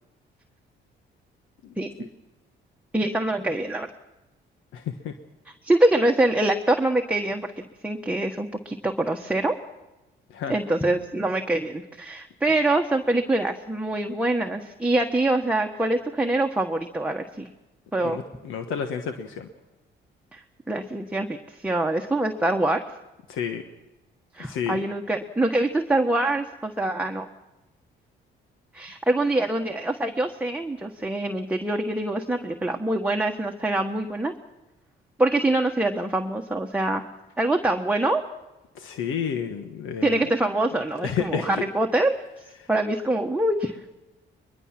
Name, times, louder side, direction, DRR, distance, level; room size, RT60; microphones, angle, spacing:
voice 1, 2.9-3.9 5.6-9.5 10.5-17.4 17.9-18.2 20.3-20.4 20.7-22.8 24.3-27.3 28.7-34.3 35.2-37.0 37.4-38.2 40.0-42.2 42.7-43.8, right 2 dB, 5° right, 2 dB, 1.3 m, -24 dB
voice 2, 4.7-5.1 10.3-10.5 18.0-19.5 23.3-23.6 24.4-24.9 38.7-40.3 41.0-41.7 42.6-42.7, left 7 dB, 85° left, 6 dB, 1.3 m, -31 dB
22.0 x 22.0 x 6.0 m, 1.0 s
cardioid pair, 90°, 20 cm